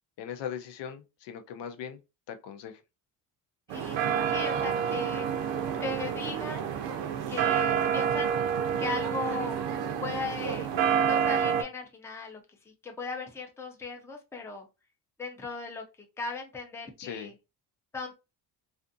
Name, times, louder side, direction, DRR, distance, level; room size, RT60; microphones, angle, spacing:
voice 1, 0.2-2.0 2.3-2.8 17.0-17.3, left 8 dB, 80° left, 0.6 m, -39 dB
voice 2, 3.7-5.3 5.8-6.8 7.3-8.4 8.8-9.6 10.0-10.7 11.0-12.4 12.7-14.7 15.2-15.8 16.2-17.3 17.9-18.1, left 3 dB, 5° left, 0.4 m, -37 dB
sound 1, 3.7-11.6, right 8 dB, 80° right, 0.6 m, -28 dB
2.5 x 2.5 x 2.5 m
cardioid pair, 135°, 42 cm